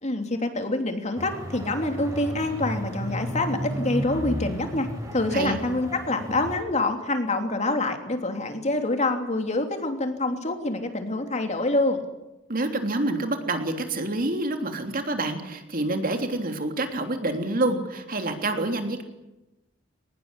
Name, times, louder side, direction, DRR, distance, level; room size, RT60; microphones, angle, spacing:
voice 1, 0.0-12.0, left 2 dB, 40° left, 5 dB, 3.2 m, -26 dB
sound 1, 1.2-6.6, equal, 20° right, 6.2 m, -33 dB
voice 2, 12.5-19.0, right 2 dB, 50° right, 5 dB, 3.3 m, -27 dB
23.0 x 19.5 x 9.9 m, 0.96 s
head